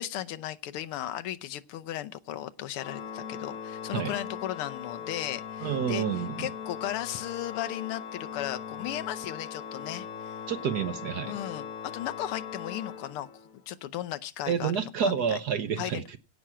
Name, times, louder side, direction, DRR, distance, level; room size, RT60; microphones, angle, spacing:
voice 1, 0.0-6.0 6.4-10.4 11.3-13.3 13.7-15.4 15.8-16.0, left 12 dB, 85° left, 1.7 m, -36 dB
Organ, 2.7-13.6, left 7 dB, 50° left, 1.1 m, -40 dB
voice 2, 5.6-6.5 10.5-11.3 14.5-16.2, right 7 dB, 60° right, 1.1 m, -29 dB
16.5 x 6.1 x 5.6 m
omnidirectional pair, 2.4 m